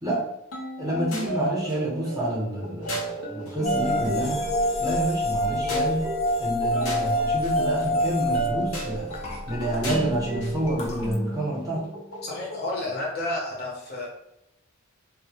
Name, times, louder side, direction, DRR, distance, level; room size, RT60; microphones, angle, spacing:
sound 1, 0.5-12.7, right 1 dB, 90° left, 0.7 m, -33 dB
voice 1, 0.8-4.4 4.8-6.1 6.4-9.1 9.5-11.9, right 1 dB, 15° right, -5 dB, 0.7 m, -28 dB
sound 2, 3.6-9.8 10.8-10.9, left 1 dB, 30° left, 0.3 m, -26 dB
voice 2, 12.2-14.1, left 2 dB, 50° left, -3 dB, 0.7 m, -31 dB
2.1 x 2.0 x 2.8 m, 0.83 s
head